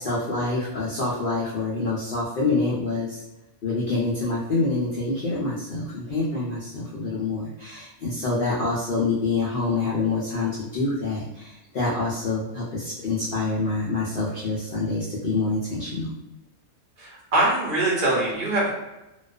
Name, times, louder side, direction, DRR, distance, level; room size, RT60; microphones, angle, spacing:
voice 1, 0.0-3.2 3.6-16.2, left 3 dB, 90° left, -6 dB, 0.4 m, -26 dB
voice 2, 17.0-18.7, right 2 dB, 45° right, -5 dB, 0.8 m, -23 dB
2.4 x 2.3 x 2.3 m, 0.95 s
omnidirectional pair, 1.6 m